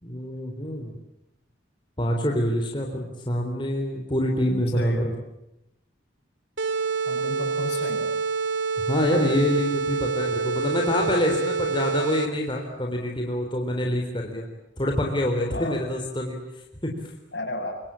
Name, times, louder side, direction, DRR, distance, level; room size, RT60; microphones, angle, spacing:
voice 1, 0.0-0.9 2.0-5.1 8.8-14.5 14.8-16.4 16.8-16.9, left 1 dB, 25° left, 1 dB, 3.8 m, -26 dB
voice 2, 4.4-5.1 7.1-8.1 15.5-15.8 17.3-17.8, left 1 dB, 65° left, 3 dB, 7.7 m, -33 dB
sound 1, 6.6-12.5, right 4 dB, 80° right, 2.5 m, -27 dB
27.5 x 24.0 x 8.8 m, 0.87 s
head